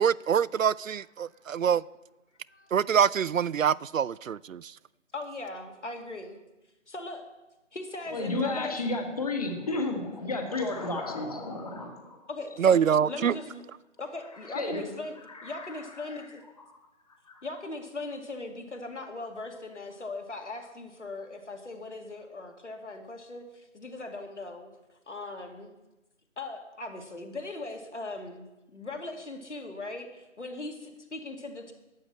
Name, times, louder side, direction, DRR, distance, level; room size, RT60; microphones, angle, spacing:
voice 1, 0.0-1.8 2.7-4.8 12.6-13.3, right 8 dB, 85° right, 0.5 m, -25 dB
voice 2, 5.1-6.4 6.9-7.3 7.7-8.8 12.3-13.6 14.0-15.2 15.4-16.2 17.4-24.7 25.1-25.7 26.4-28.4 28.7-31.7, left 2 dB, 65° left, 2.5 m, -39 dB
voice 3, 8.1-12.3 14.4-14.9 15.3-16.1 17.3-17.4, left 2 dB, 30° left, 1.8 m, -32 dB
12.0 x 8.1 x 7.4 m
figure-of-eight pair, 165°, 38 cm